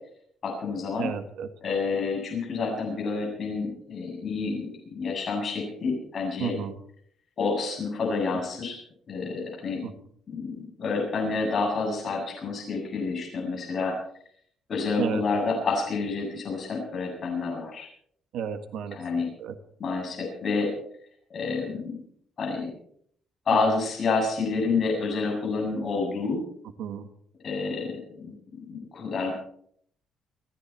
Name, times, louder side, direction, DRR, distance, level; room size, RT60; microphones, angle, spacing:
voice 1, 0.4-1.1 1.6-6.5 7.4-8.8 9.1-9.8 10.3-13.9 14.7-17.9 18.9-19.3 19.8-20.7 21.3-22.0 22.4-22.7 23.5-26.4 27.4-28.4 28.7-29.3, left 4 dB, 40° left, -1 dB, 7.7 m, -29 dB
voice 2, 1.0-1.5 6.4-6.8 9.8-9.9 15.0-15.2 18.3-19.0 19.4-19.6 23.5-23.6 26.8-27.1, right 7 dB, 80° right, 9 dB, 1.6 m, -32 dB
29.5 x 11.0 x 4.4 m, 0.64 s
cardioid pair, 155°, 0 cm